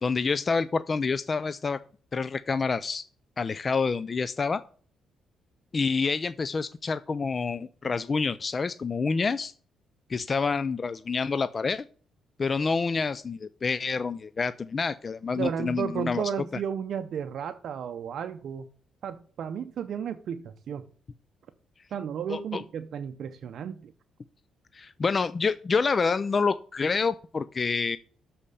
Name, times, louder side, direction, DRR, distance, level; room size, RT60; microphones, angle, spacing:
voice 1, 0.0-1.8 2.1-3.0 3.4-4.6 5.7-9.5 10.1-11.8 12.4-16.2 22.3-22.6 24.7-28.0, left 4 dB, 35° left, 0.3 m, -27 dB
voice 2, 15.3-18.7 19.0-20.9 21.9-23.9, right 8 dB, 65° right, 0.5 m, -33 dB
7.3 x 4.3 x 6.5 m
cardioid pair, 90°, 0 cm